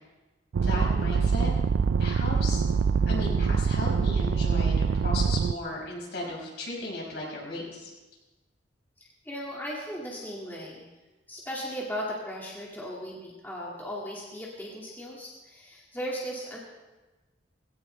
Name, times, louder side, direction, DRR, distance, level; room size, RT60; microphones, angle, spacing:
sound 1, 0.5-5.5, right 5 dB, 80° right, 0.4 m, -24 dB
voice 1, 0.6-1.5 2.0-2.6 3.1-7.9, left 1 dB, 60° left, -3 dB, 5.3 m, -35 dB
voice 2, 9.0-10.9 11.3-16.6, equal, 10° left, -5 dB, 2.2 m, -37 dB
19.0 x 17.0 x 3.3 m, 1.2 s
head